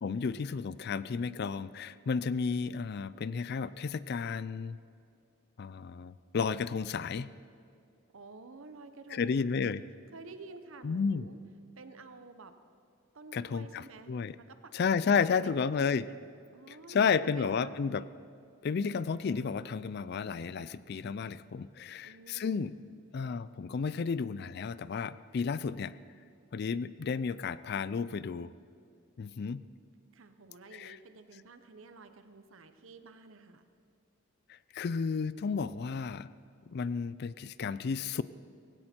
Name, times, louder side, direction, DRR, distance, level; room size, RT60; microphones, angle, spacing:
voice 1, 0.0-4.8 5.6-7.3 9.1-9.8 10.8-11.3 13.3-14.4 14.7-16.1 16.7-18.0 18.6-22.8 23.1-25.9 26.5-28.5 29.2-29.6 30.7-31.0 34.7-36.3 36.7-38.2, left 5 dB, 50° left, 17 dB, 0.4 m, -32 dB
voice 2, 8.1-9.7 10.1-11.4 11.8-12.5 13.1-14.7 15.0-15.7 16.5-17.9 22.0-22.7 30.1-33.7, right 3 dB, 75° right, 9 dB, 0.9 m, -51 dB
18.0 x 16.5 x 4.4 m, 2.4 s
head